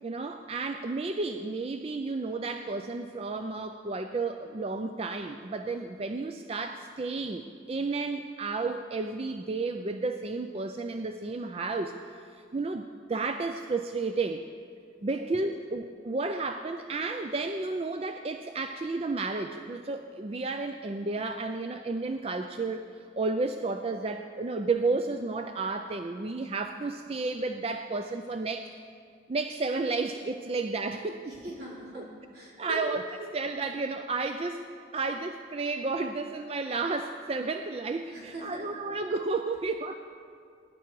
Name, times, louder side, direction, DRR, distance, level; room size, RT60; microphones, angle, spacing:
voice 1, 0.0-14.4 15.0-28.6 29.3-31.3 32.0-32.1 32.6-34.6 34.9-40.0, right 3 dB, 30° right, 7 dB, 0.4 m, -32 dB
voice 2, 15.1-15.5 31.2-32.1 32.3-32.8 38.1-38.6, right 1 dB, 50° right, -5 dB, 3.5 m, -42 dB
20.0 x 10.5 x 4.7 m, 2.3 s
head